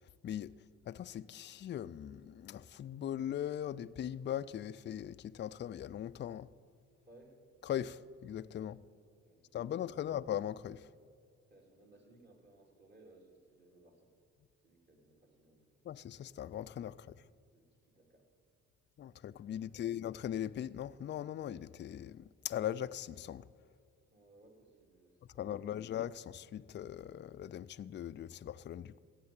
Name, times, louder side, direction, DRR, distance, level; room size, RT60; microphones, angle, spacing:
voice 1, 0.9-6.5 7.6-8.8 9.5-10.9 15.8-17.2 19.0-23.5 25.4-29.0, left 10 dB, 40° left, 0.4 m, -40 dB
voice 2, 7.0-7.4 8.5-8.8 9.2-10.2 10.9-11.0 11.5-14.1 14.6-15.8 16.9-17.0 17.2-18.3 19.5-20.0 24.1-25.9, right 2 dB, 35° right, 3.3 m, -63 dB
16.0 x 7.5 x 8.8 m
cardioid pair, 90°, 30 cm